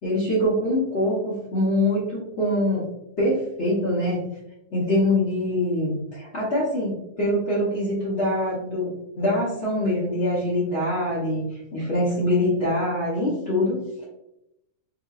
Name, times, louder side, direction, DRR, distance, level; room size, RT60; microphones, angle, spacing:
voice 1, 0.0-2.8 3.2-4.2 4.7-8.9 9.2-14.0, left 1 dB, 50° left, -8 dB, 1.2 m, -24 dB
3.9 x 2.8 x 2.3 m, 0.87 s
omnidirectional pair, 1.7 m